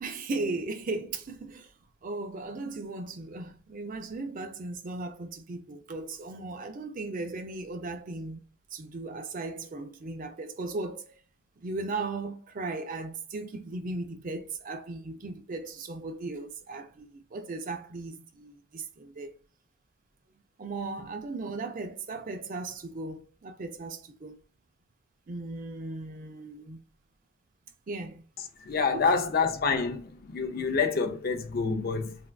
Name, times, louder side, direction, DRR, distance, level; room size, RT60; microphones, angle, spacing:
voice 1, 0.0-1.7 2.0-11.1 11.6-19.3 20.6-24.4 25.3-26.8 27.9-28.2 28.9-29.4, right 3 dB, 40° right, 0.4 m, -37 dB
voice 2, 28.7-32.2, left 5 dB, 45° left, 0.4 m, -27 dB
3.4 x 2.4 x 2.3 m
head